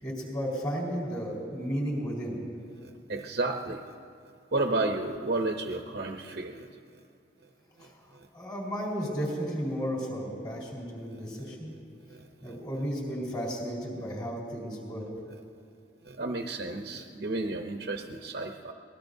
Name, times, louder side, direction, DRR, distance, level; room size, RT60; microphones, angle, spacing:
voice 1, 0.0-2.4 7.8-7.9 8.3-11.8 12.4-15.1, equal, 25° left, -4 dB, 4.1 m, -33 dB
voice 2, 2.8-3.8 4.5-6.7 7.8-7.9 8.1-8.3 11.4-11.5 12.1-12.6 16.0-18.7, right 2 dB, 60° right, 3 dB, 0.8 m, -32 dB
24.5 x 19.5 x 2.7 m, 2.4 s
head